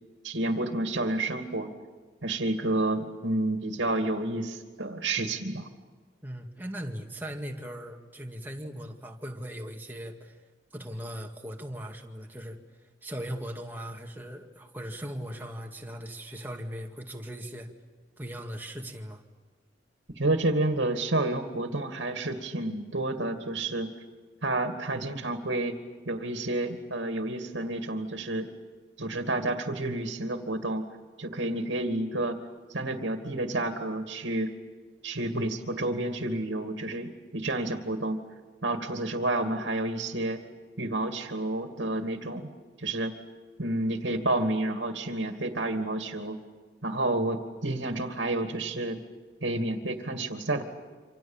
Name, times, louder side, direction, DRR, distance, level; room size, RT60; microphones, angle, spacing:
voice 1, 0.2-1.7 2.2-5.7 20.1-23.9 24.4-25.8 26.1-28.5 29.0-30.9 31.2-32.4 32.7-34.5 35.0-38.2 38.6-40.4 40.8-42.5 42.8-43.1 43.6-46.4 46.8-49.0 49.4-50.6, right 2 dB, 80° right, 5 dB, 2.2 m, -30 dB
voice 2, 6.2-10.4 10.7-12.6 13.0-17.7 18.2-19.2, equal, 10° right, 1 dB, 2.2 m, -39 dB
28.0 x 26.5 x 7.3 m, 1.4 s
head